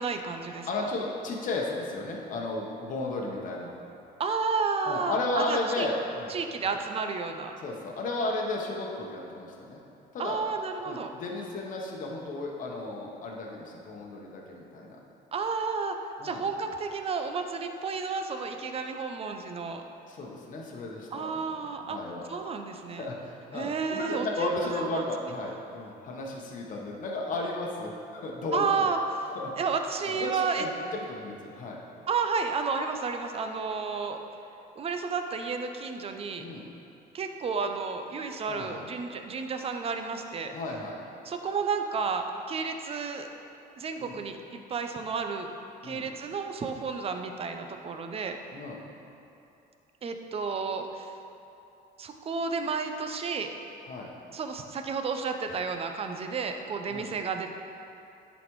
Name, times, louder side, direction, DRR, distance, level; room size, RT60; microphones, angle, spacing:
voice 1, 0.0-0.9 4.2-5.9 6.3-7.6 10.2-11.1 15.3-19.8 21.1-22.0 22.3-23.1 23.5-25.0 28.5-29.0 29.6-30.7 32.1-34.2 34.8-36.5 37.1-40.5 41.2-43.3 43.8-45.5 45.8-48.4 50.0-51.1 52.0-53.5 54.3-57.5, right 5 dB, 35° right, 6 dB, 0.6 m, -31 dB
voice 2, 0.7-3.7 4.8-6.3 6.6-6.8 7.6-9.8 10.1-10.4 10.8-15.0 16.2-16.4 20.1-21.3 21.8-22.3 23.0-28.9 29.3-29.5 30.1-31.8 36.4-36.7 38.5-38.8 40.5-41.0 44.0-44.2 45.8-46.1 48.5-48.8 53.8-54.1 56.9-57.1, left 2 dB, 50° left, -1 dB, 1.0 m, -34 dB
10.5 x 4.1 x 3.1 m, 2.7 s
cardioid pair, 110°, 17 cm